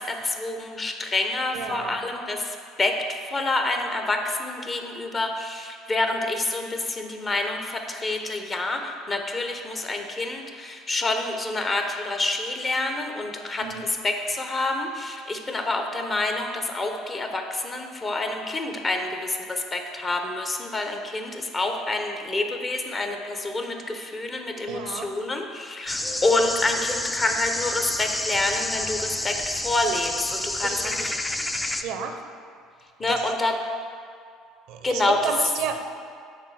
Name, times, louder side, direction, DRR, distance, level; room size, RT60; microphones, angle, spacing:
voice 1, 0.0-31.1 31.7-31.8 33.0-33.6 34.8-35.3, left 2 dB, 30° left, 4 dB, 0.9 m, -27 dB
voice 2, 1.5-2.0 13.6-13.9 24.7-25.1 30.6-31.0 31.8-32.2 33.1-33.2 34.7-35.8, right 7 dB, 65° right, 6 dB, 0.6 m, -31 dB
sound 1, 25.9-31.8, left 1 dB, 15° left, 0.5 m, -29 dB
6.5 x 4.0 x 6.3 m, 2.3 s
hypercardioid pair, 65°, 0 cm